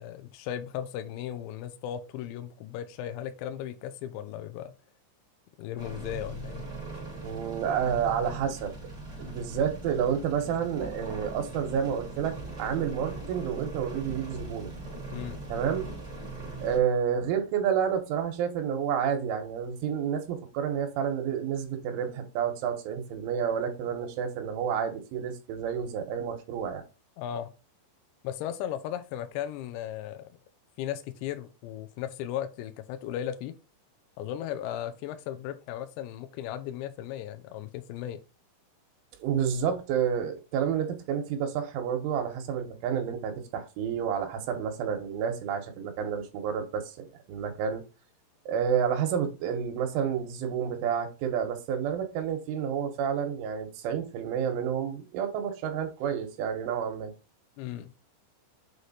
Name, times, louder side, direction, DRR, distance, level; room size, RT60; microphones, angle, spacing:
voice 1, 0.0-4.7 5.6-6.7 15.1-15.4 27.2-27.5 28.2-30.3 30.8-33.6 34.2-38.2 57.6-57.9, left 11 dB, 85° left, 2.5 m, -36 dB
sound 1, 5.8-16.8, right 3 dB, 35° right, 0.6 m, -40 dB
voice 2, 7.2-8.7 9.2-14.7 15.5-15.9 16.6-26.8 39.2-47.8 48.5-57.1, right 8 dB, 80° right, 3.4 m, -30 dB
7.8 x 3.2 x 4.0 m
omnidirectional pair, 5.7 m